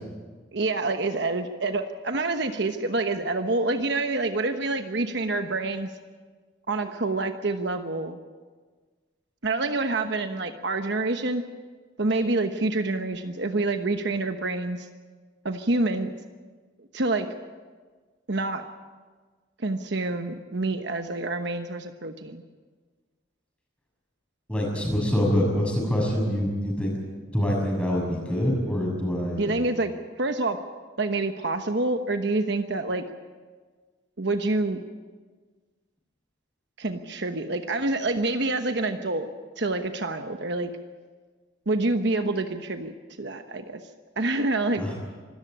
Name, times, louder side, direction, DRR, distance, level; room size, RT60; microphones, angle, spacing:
voice 1, 0.5-5.9 6.7-8.2 9.4-11.4 12.0-14.9 15.4-16.1 16.8-17.3 18.3-18.6 19.6-22.4 29.4-30.6 31.0-33.0 34.2-34.8 36.8-39.3 39.6-40.7 41.7-43.8 44.2-44.9, right 2 dB, 60° right, 7 dB, 1.1 m, -27 dB
voice 2, 24.5-26.9 27.3-29.5 44.8-44.9, equal, 5° left, -1 dB, 6.6 m, -25 dB
25.5 x 14.0 x 8.6 m, 1.4 s
head